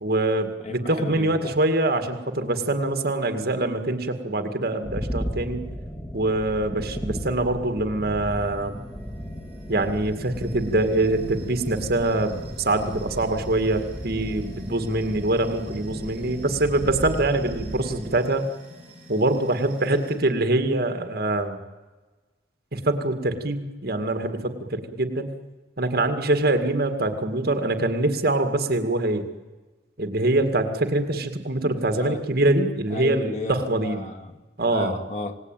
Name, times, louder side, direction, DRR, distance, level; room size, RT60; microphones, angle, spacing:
voice 1, 0.0-5.6 6.1-8.8 9.7-18.5 19.1-21.6 22.7-25.3 25.8-29.2 30.0-34.0 34.6-35.0, right 2 dB, 55° right, 7 dB, 2.2 m, -24 dB
voice 2, 0.6-1.5 31.9-32.2 32.9-34.4 34.7-35.3, left 3 dB, 40° left, 6 dB, 1.9 m, -34 dB
sound 1, 4.8-18.2, equal, 10° left, 2.4 m, -35 dB
sound 2, 8.3-20.2, right 1 dB, 5° right, 7.1 m, -49 dB
27.0 x 19.5 x 9.1 m, 1.2 s
head